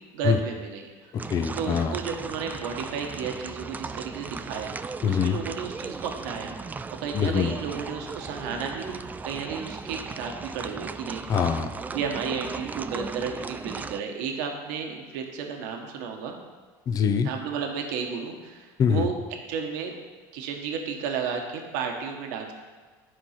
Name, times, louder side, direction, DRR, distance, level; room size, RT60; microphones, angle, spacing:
voice 1, 0.1-1.1 1.6-4.7 5.1-6.7 7.0-11.2 11.9-16.4 17.2-19.1 19.5-19.9 20.3-22.5, right 6 dB, 80° right, 2 dB, 1.2 m, -33 dB
voice 2, 1.1-2.0 5.0-5.4 7.1-7.6 11.3-11.7 16.9-17.3 18.8-19.1, left 7 dB, 35° left, 8 dB, 0.6 m, -24 dB
sound 1, 1.2-14.0, right 4 dB, 15° right, 0.3 m, -37 dB
11.0 x 4.6 x 5.8 m, 1.4 s
supercardioid pair, 105°, 10 cm